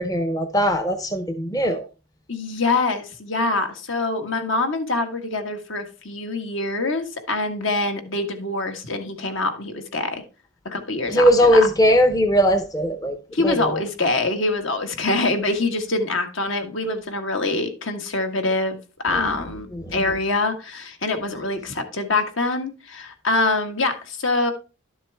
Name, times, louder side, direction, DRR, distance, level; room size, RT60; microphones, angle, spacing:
voice 1, 0.0-1.9 11.1-13.8 19.1-19.4 19.7-20.1, equal, 15° left, 0.6 m, -20 dB
voice 2, 2.3-10.2 10.6-11.6 13.3-18.8 19.0-19.7 19.9-24.5, left 2 dB, 65° left, 1.6 m, -24 dB
12.0 x 7.3 x 3.4 m
head